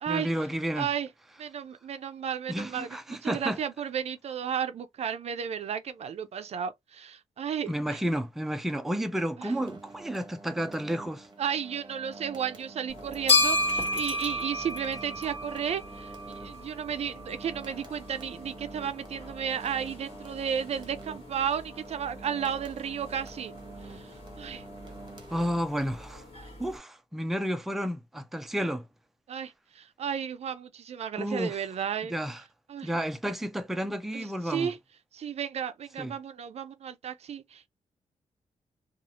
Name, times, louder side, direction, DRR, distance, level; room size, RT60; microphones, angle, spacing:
voice 1, 0.1-0.9 2.5-3.6 7.7-11.3 25.3-26.2 26.6-28.9 31.2-31.6 32.1-32.4 32.8-34.7 36.0-36.1, equal, ahead, 0.4 m, -31 dB
voice 2, 0.8-1.1 1.4-8.0 9.4-9.5 11.4-23.5 23.8-24.1 24.4-24.6 29.3-32.1 32.7-32.9 34.1-34.8 35.1-37.7, right 8 dB, 60° right, 0.4 m, -33 dB
sound 1, 9.4-25.9, right 3 dB, 35° right, 0.9 m, -47 dB
sound 2, 12.9-26.8, left 2 dB, 50° left, 1.4 m, -34 dB
2.7 x 2.4 x 2.8 m
wide cardioid pair, 130°, 13 cm